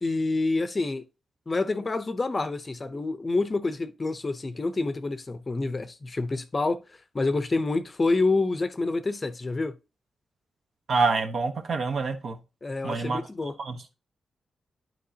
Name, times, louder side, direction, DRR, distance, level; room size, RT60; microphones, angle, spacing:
voice 1, 0.0-1.0 1.5-6.8 7.1-9.7 12.6-13.6, left 3 dB, 25° left, 0.6 m, -27 dB
voice 2, 10.9-12.4 12.8-13.2 13.6-14.0, right 4 dB, 55° right, 1.0 m, -27 dB
11.5 x 4.5 x 2.8 m
wide cardioid pair, 145°, 0 cm